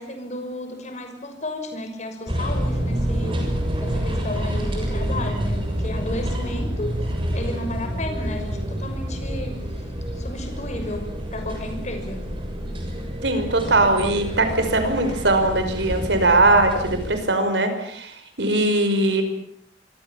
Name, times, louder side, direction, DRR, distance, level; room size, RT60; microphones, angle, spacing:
voice 1, 0.0-3.5 3.8-7.1 7.3-9.6 10.1-12.3, left 1 dB, 40° left, 6 dB, 6.2 m, -33 dB
sound 1, 2.3-17.1, equal, 30° right, 7.0 m, -28 dB
voice 2, 13.2-19.2, right 2 dB, 75° right, 7 dB, 5.6 m, -20 dB
26.5 x 23.5 x 7.4 m, 0.69 s
head